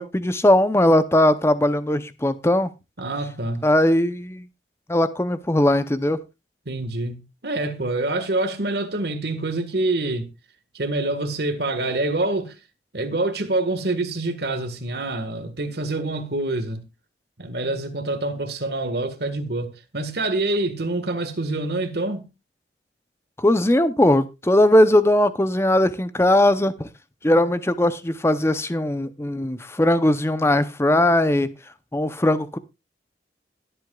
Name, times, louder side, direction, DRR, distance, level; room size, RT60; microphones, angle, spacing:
voice 1, 0.0-2.7 3.6-4.5 4.9-6.2 23.4-26.9 27.2-31.5 31.9-32.6, left 1 dB, 15° left, 0.6 m, -19 dB
voice 2, 3.0-3.6 6.6-10.3 10.7-12.5 12.9-16.8 17.4-22.3, right 2 dB, 60° right, 1.6 m, -26 dB
21.0 x 7.9 x 2.4 m
head